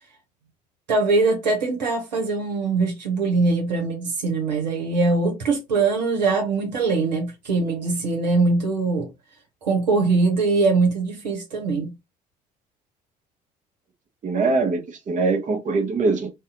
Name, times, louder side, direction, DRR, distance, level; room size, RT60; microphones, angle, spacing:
voice 1, 0.9-9.1 9.6-11.9, right 3 dB, 80° right, 0.9 m, -22 dB
voice 2, 14.2-16.3, right 3 dB, 35° right, 1.0 m, -22 dB
2.7 x 2.2 x 3.6 m
figure-of-eight pair, 55°, 21 cm